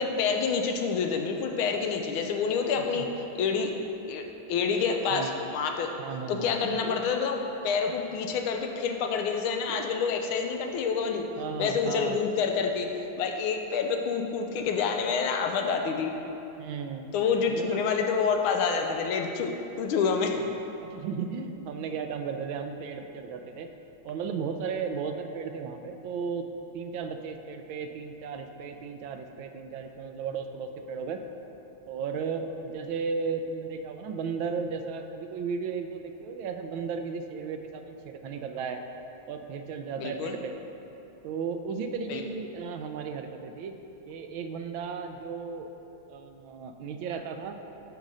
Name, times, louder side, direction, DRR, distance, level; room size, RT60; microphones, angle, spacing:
voice 1, 0.0-3.1 3.3-3.7 4.1-4.2 4.5-5.9 6.3-7.4 7.6-11.3 11.6-12.9 13.2-16.1 17.1-20.4 40.0-40.3 42.1-42.2, left 5 dB, 90° left, 4 dB, 1.5 m, -27 dB
voice 2, 2.8-3.1 5.1-5.4 6.0-7.0 9.8-10.1 11.4-12.3 16.6-17.1 17.5-17.8 20.4-20.5 20.8-23.7 24.0-26.4 26.7-31.2 31.9-38.8 39.3-40.5 41.2-43.7 44.1-45.7 46.1-47.6, right 5 dB, 75° right, 6 dB, 1.3 m, -35 dB
9.6 x 3.8 x 6.2 m, 2.9 s
omnidirectional pair, 2.2 m